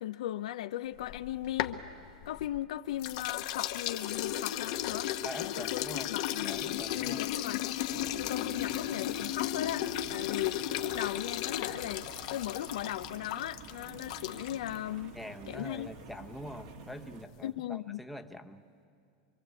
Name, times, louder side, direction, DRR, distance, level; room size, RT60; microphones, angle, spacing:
voice 1, 0.0-1.8 2.3-5.1 5.4-5.8 6.1-7.7 8.2-15.2 15.5-15.9 17.4-18.0, left 13 dB, 75° left, 0.6 m, -37 dB
sound 1, 1.0-2.6 3.0-14.8, left 12 dB, 55° left, 1.1 m, -35 dB
voice 2, 5.2-6.2 6.4-7.3 15.1-18.6, equal, ahead, 0.9 m, -44 dB
sound 2, 7.9-17.2, right 5 dB, 55° right, 1.7 m, -50 dB
25.5 x 24.0 x 8.2 m
supercardioid pair, 150°, 4 cm